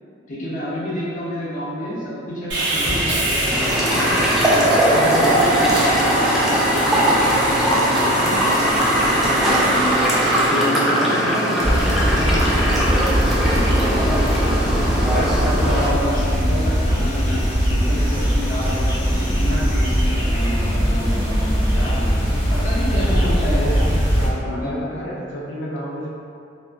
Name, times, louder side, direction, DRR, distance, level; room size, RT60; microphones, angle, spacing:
voice 1, 0.3-4.3 4.9-9.8 10.5-14.7 15.2-22.2 22.5-23.8 24.4-24.7, left 1 dB, 45° left, -9 dB, 0.8 m, -29 dB
Sawing, 2.5-10.5, right 1 dB, 70° right, 0.8 m, -23 dB
sound 1, 3.5-15.9, equal, ahead, 0.3 m, -20 dB
sound 2, 11.6-24.3, equal, 20° left, 1.0 m, -20 dB
voice 2, 15.6-16.3 22.9-26.1, equal, 75° left, -3 dB, 0.5 m, -31 dB
2.7 x 2.3 x 2.4 m, 2.4 s
head